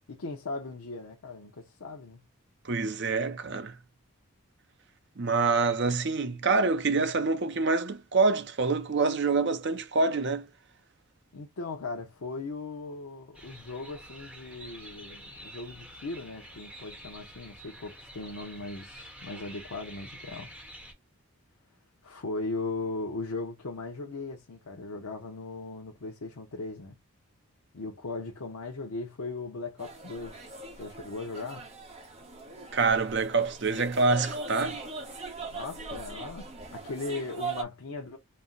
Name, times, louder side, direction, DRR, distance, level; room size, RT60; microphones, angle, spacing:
voice 1, 0.1-2.2 11.3-20.5 22.0-26.9 27.7-31.7 35.5-38.2, left 3 dB, 75° left, 0.7 m, -38 dB
voice 2, 2.6-3.8 5.2-10.5 32.7-34.8, right 4 dB, 50° right, 0.6 m, -26 dB
sound 1, 13.3-20.9, right 1 dB, 5° right, 1.0 m, -48 dB
sound 2, 29.8-37.6, right 3 dB, 30° right, 0.9 m, -40 dB
4.2 x 2.1 x 3.8 m
head